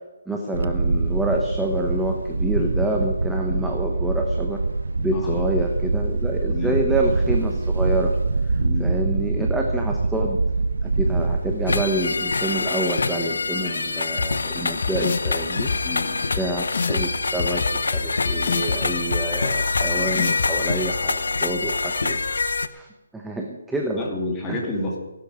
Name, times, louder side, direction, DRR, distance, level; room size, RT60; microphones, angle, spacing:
voice 1, 0.3-4.6 5.0-8.1 8.8-10.4 10.8-16.1 16.3-22.2 22.7-22.9 23.1-24.1 24.5-24.6, right 1 dB, 5° right, 0 dB, 1.1 m, -27 dB
Wind, 0.5-11.8, right 3 dB, 85° right, 0.8 m, -24 dB
voice 2, 5.1-5.4 6.5-6.8 8.6-9.0 15.8-16.3 24.0-25.0, left 2 dB, 10° left, -1 dB, 2.7 m, -30 dB
sound 1, 11.7-22.7, left 3 dB, 85° left, 1.0 m, -25 dB
sound 2, 14.2-14.3 14.8-15.3 15.7-15.8 16.3-16.4 16.7-17.0 17.4-18.8 19.1-19.2 19.7-19.8 20.1-20.5, left 5 dB, 55° left, 1.5 m, -25 dB
17.0 x 12.0 x 5.1 m, 1.1 s
hypercardioid pair, 165°, 0 cm